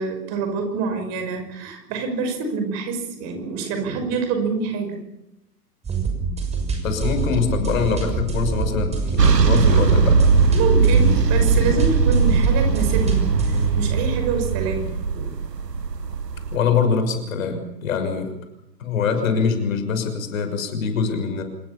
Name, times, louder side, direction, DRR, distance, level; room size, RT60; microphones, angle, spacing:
voice 1, 0.0-5.0 8.2-8.3 10.5-15.3, right 4 dB, 30° right, 6 dB, 6.1 m, -26 dB
sound 1, 5.8-13.7, right 4 dB, 15° right, 6.1 m, -25 dB
voice 2, 6.8-10.2 16.5-18.4 18.8-21.4, left 5 dB, 55° left, 7 dB, 6.4 m, -23 dB
sound 2, 9.2-16.6, right 5 dB, 80° right, 1.4 m, -19 dB
27.0 x 21.5 x 7.2 m, 0.86 s
figure-of-eight pair, 110°, 49 cm